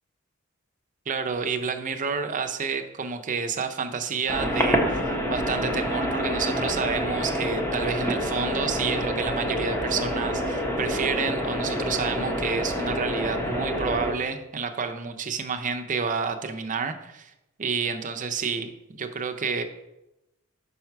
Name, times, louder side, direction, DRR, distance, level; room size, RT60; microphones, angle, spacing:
voice 1, 1.1-17.3 17.6-19.6, right 5 dB, 40° right, 7 dB, 0.6 m, -29 dB
sound 1, 4.3-14.1, equal, 10° left, 0.9 m, -27 dB
5.5 x 4.6 x 5.7 m, 0.92 s
head